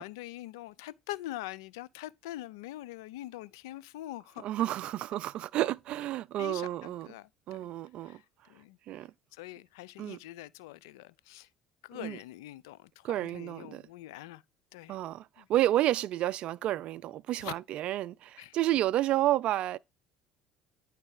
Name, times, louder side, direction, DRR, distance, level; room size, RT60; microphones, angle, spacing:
voice 1, 0.0-4.5 6.4-7.3 7.6-7.7 8.0-8.2 8.5-8.8 9.3-11.5 11.8-14.4 14.7-15.0 15.4-15.5 17.4-17.5 18.4-18.6, left 15 dB, 85° left, 0.3 m, -43 dB
voice 2, 4.4-7.1 7.5-8.2 8.9-9.1 10.0-10.2 11.9-12.2 13.0-13.8 14.9-19.8, right 14 dB, 60° right, 0.3 m, -30 dB
9.7 x 3.3 x 4.7 m
hypercardioid pair, 70°, 2 cm